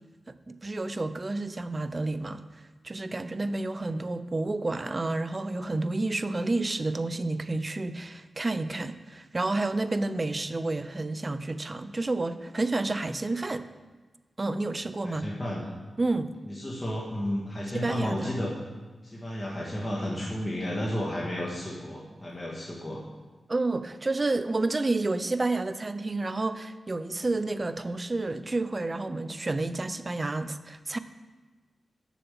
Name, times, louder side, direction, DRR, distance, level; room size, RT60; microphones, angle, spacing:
voice 1, 0.3-2.4 2.8-13.7 14.4-15.3 16.0-16.3 17.7-18.3 23.5-31.0, right 2 dB, 35° right, 12 dB, 0.5 m, -30 dB
voice 2, 15.0-15.7 16.5-18.5 19.0-23.0, left 1 dB, 20° left, -4 dB, 1.7 m, -32 dB
7.1 x 6.9 x 7.2 m, 1.3 s
cardioid pair, 60°, 0 cm